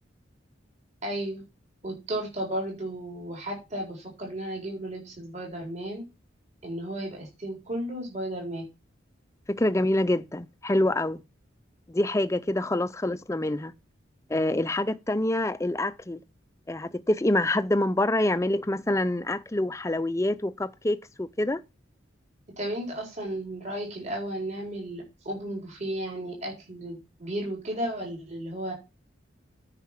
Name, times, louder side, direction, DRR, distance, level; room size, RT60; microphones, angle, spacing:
voice 1, 1.0-1.4 1.8-6.0 6.6-8.6 22.6-28.7, right 1 dB, 35° right, 4.3 m, -34 dB
voice 2, 9.5-11.2 11.9-13.7 14.3-16.2 16.7-21.6, left 1 dB, 15° left, 0.5 m, -26 dB
9.4 x 5.6 x 7.4 m
head